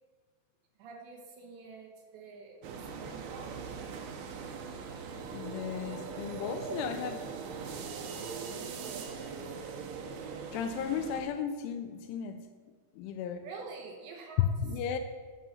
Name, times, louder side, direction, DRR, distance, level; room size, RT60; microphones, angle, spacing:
voice 1, 0.8-3.8 6.6-7.3 8.4-9.6 13.4-14.5 14.8-15.0, right 4 dB, 75° right, 1 dB, 2.8 m, -48 dB
sound 1, 2.6-11.2, right 5 dB, 90° right, 2.2 m, -41 dB
voice 2, 5.3-7.3 10.5-12.5 13.0-13.5 14.6-15.0, left 7 dB, 85° left, 8 dB, 2.8 m, -36 dB
10.5 x 5.5 x 7.0 m, 1.5 s
omnidirectional pair, 5.7 m